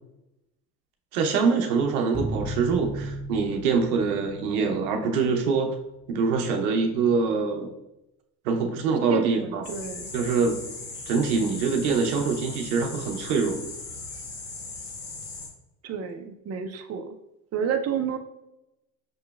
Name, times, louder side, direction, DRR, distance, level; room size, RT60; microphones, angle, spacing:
voice 1, 1.1-5.8 6.1-7.7 8.4-9.7 10.1-10.7 11.1-13.6, right 5 dB, 90° right, 4 dB, 0.7 m, -24 dB
sound 1, 2.1-6.6, right 1 dB, 15° right, 1.1 m, -36 dB
voice 2, 9.1-10.1 15.8-17.1 17.5-18.2, right 7 dB, 35° right, 6 dB, 0.6 m, -30 dB
sound 2, 9.6-15.5, left 3 dB, 85° left, 1.2 m, -38 dB
6.1 x 2.9 x 2.2 m, 0.90 s
supercardioid pair, 80°, 43 cm